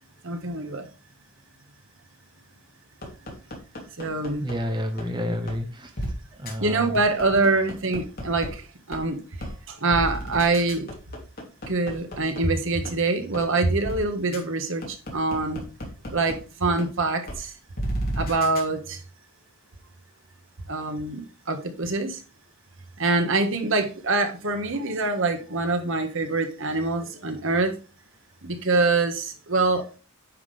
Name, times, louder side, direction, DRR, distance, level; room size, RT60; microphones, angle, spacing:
voice 1, 0.2-0.9 4.0-4.4 6.6-8.6 8.9-9.2 9.8-10.9 11.7-15.6 16.1-17.5 18.2-19.0 20.7-22.2 23.0-27.7 28.4-29.8, right 3 dB, 60° right, 1.5 m, -25 dB
sound 1, 3.0-4.5 5.0-5.1 5.5-5.6 6.0-6.1 6.5-6.6 6.9-8.5 8.9-9.0 9.4-9.5 9.9-12.4 12.9-13.0 13.3-13.4 13.8-14.0 14.3-14.4 14.8-16.3 16.8-16.9 17.3-17.4 17.8-18.6, equal, 45° left, 2.9 m, -32 dB
voice 2, 4.4-7.0, equal, 20° right, 0.9 m, -30 dB
9.7 x 6.0 x 3.4 m
head